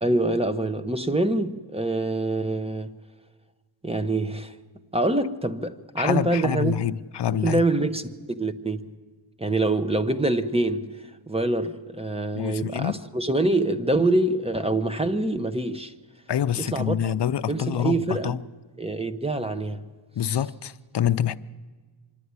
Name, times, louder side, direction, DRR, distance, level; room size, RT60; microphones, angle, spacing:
voice 1, 0.0-2.9 3.8-4.5 4.9-6.7 7.4-8.9 9.4-10.9 11.3-15.9 16.6-17.1 17.5-18.3 18.8-19.8, right 2 dB, 15° right, 0.8 m, -25 dB
voice 2, 6.0-7.6 12.3-13.0 16.3-18.4 20.2-21.4, left 10 dB, 65° left, 0.6 m, -26 dB
25.0 x 11.5 x 9.6 m
wide cardioid pair, 140°, 45 cm